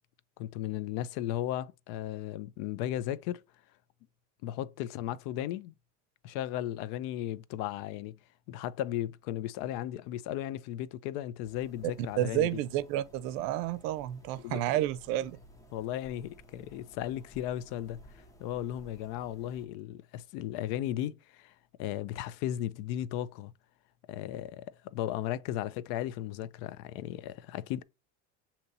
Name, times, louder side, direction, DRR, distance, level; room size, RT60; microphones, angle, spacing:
voice 1, 0.4-3.4 4.4-5.7 6.2-8.2 8.5-12.6 14.4-14.8 15.7-21.5 21.8-23.5 24.1-27.8, left 12 dB, 75° left, 0.5 m, -36 dB
sound 1, 11.4-19.7, equal, 10° left, 0.5 m, -56 dB
voice 2, 12.2-15.4, right 13 dB, 75° right, 0.5 m, -30 dB
6.5 x 2.9 x 2.7 m
cardioid pair, 145°, 37 cm